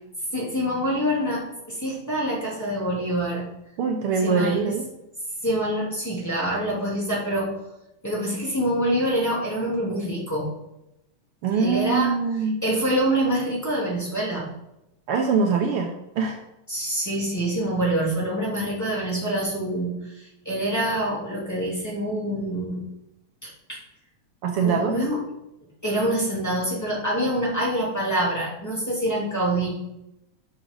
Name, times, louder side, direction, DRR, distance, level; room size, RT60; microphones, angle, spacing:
voice 1, 0.3-3.4 4.2-4.7 5.4-7.5 8.0-10.5 11.5-12.2 12.6-14.5 16.7-22.8 23.4-23.8 24.6-25.2 25.8-29.7, right 1 dB, 5° left, -7 dB, 2.6 m, -26 dB
voice 2, 3.8-4.9 11.4-12.6 15.1-16.4 24.4-24.9, right 5 dB, 90° right, 3 dB, 1.2 m, -23 dB
12.0 x 6.2 x 3.9 m, 0.87 s
omnidirectional pair, 3.6 m